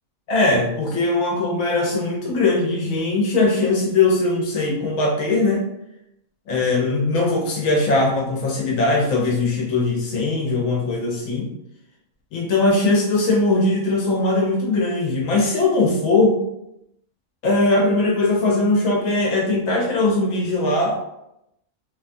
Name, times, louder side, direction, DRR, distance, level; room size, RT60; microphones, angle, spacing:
voice 1, 0.3-5.6 6.5-11.5 12.3-16.4 17.4-21.0, left 2 dB, 80° left, -1 dB, 1.0 m, -20 dB
2.7 x 2.2 x 2.5 m, 0.83 s
omnidirectional pair, 1.4 m